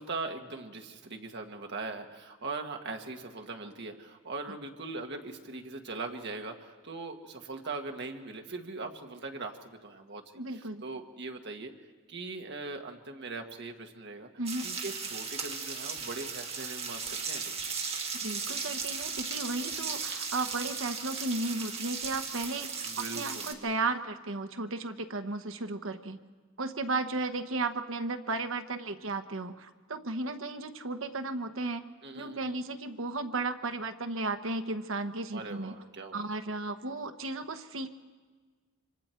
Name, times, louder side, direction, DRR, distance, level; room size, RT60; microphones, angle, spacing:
voice 1, 0.0-14.3 14.6-17.6 22.8-23.7 32.0-32.5 35.3-36.3, right 3 dB, 55° right, 4 dB, 1.6 m, -40 dB
voice 2, 10.4-10.8 14.4-14.7 18.2-26.2 26.6-31.9 32.1-35.7 36.1-37.9, right 3 dB, 70° right, 7 dB, 1.1 m, -34 dB
sound 1, 14.5-23.5, right 5 dB, 30° right, 1.7 m, -36 dB
26.5 x 25.0 x 4.5 m, 1.4 s
head